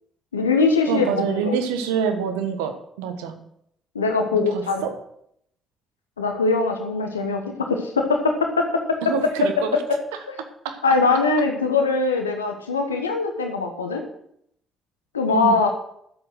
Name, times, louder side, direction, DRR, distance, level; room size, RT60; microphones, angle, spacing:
voice 1, 0.3-1.5 3.9-4.9 6.2-9.1 9.9-10.0 10.3-10.4 10.8-14.0 15.1-15.7, left 4 dB, 90° left, 4 dB, 1.1 m, -22 dB
voice 2, 0.9-3.3 4.3-5.0 9.0-9.7 10.6-10.8 15.3-15.6, right 6 dB, 75° right, 8 dB, 1.3 m, -26 dB
11.5 x 7.9 x 6.3 m, 0.72 s
figure-of-eight pair, 45°, 0 cm